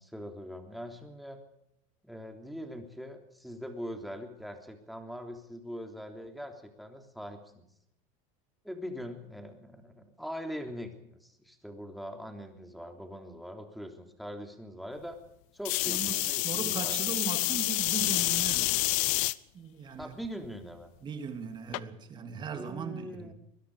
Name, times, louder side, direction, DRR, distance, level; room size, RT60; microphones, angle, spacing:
voice 1, 0.0-1.4 2.0-7.6 8.6-15.2 15.5-17.2 20.0-20.9 22.5-23.3, equal, ahead, 3.4 m, -42 dB
sound 1, 15.6-19.3 20.0-20.5 21.7-21.8, left 22 dB, 65° left, 0.9 m, -28 dB
voice 2, 15.9-19.2 19.5-20.1 21.0-23.3, right 6 dB, 25° right, 3.2 m, -38 dB
24.5 x 22.0 x 5.0 m
supercardioid pair, 145°, 17 cm